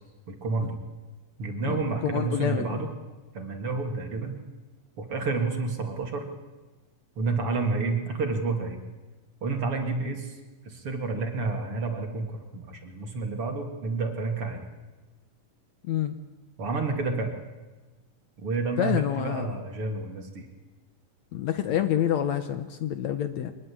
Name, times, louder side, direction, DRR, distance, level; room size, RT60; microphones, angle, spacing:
voice 1, 0.3-0.8 1.4-2.9 3.3-4.4 5.0-6.3 7.2-8.8 9.4-10.3 10.6-14.7 16.6-17.3 18.4-20.5, right 3 dB, 45° right, 4 dB, 3.3 m, -30 dB
voice 2, 1.6-2.8 15.9-16.1 18.8-19.5 21.3-23.5, left 10 dB, 65° left, 9 dB, 2.1 m, -27 dB
23.5 x 21.5 x 8.7 m, 1.2 s
omnidirectional pair, 3.8 m